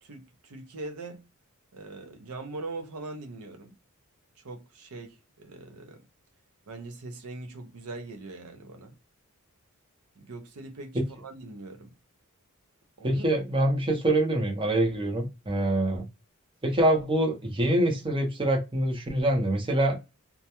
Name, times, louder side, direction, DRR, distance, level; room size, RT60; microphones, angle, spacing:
voice 1, 0.0-1.3 1.7-3.8 4.4-6.0 6.7-8.9 10.2-11.9 13.0-13.3, right 2 dB, 80° right, 0.6 m, -41 dB
voice 2, 13.0-16.0 16.6-20.0, right 1 dB, 25° right, 0.6 m, -25 dB
2.2 x 2.1 x 2.8 m
head